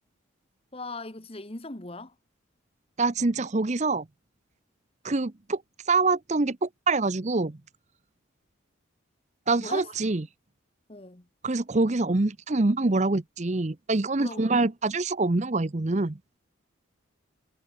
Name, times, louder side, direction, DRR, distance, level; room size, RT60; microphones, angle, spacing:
voice 1, 0.7-2.1 9.6-9.9 10.9-11.3 14.2-14.6, left 2 dB, 30° left, 1.3 m, -39 dB
voice 2, 3.0-4.0 5.0-5.6 5.9-7.6 9.5-10.2 11.4-16.2, right 3 dB, 35° right, 0.7 m, -25 dB
head